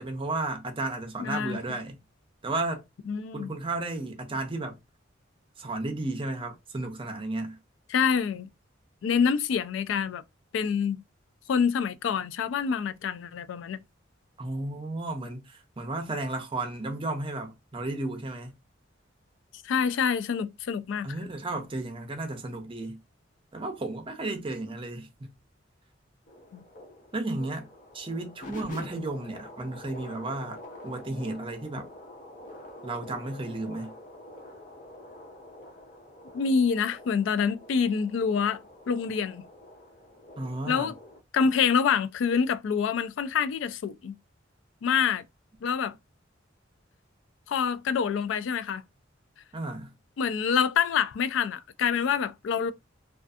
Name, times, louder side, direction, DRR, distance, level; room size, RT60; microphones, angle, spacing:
voice 1, 0.0-2.0 2.4-2.8 3.3-4.8 5.6-7.6 14.4-18.5 21.0-23.0 23.5-25.3 27.1-27.7 27.9-30.6 30.8-31.9 32.8-33.9 40.4-40.9 49.5-49.9, right 2 dB, 25° right, 0.5 m, -33 dB
voice 2, 1.2-1.6 3.1-3.5 7.9-8.5 9.0-10.2 10.5-11.0 11.5-13.8 19.6-21.1 26.5-26.6 36.3-39.4 40.7-41.0 41.3-44.1 44.8-45.2 45.6-45.9 47.5-48.8 50.2-52.7, left 6 dB, 75° left, 0.3 m, -26 dB
sound 1, 26.3-41.2, left 1 dB, 40° left, 0.7 m, -47 dB
2.5 x 2.4 x 2.3 m
head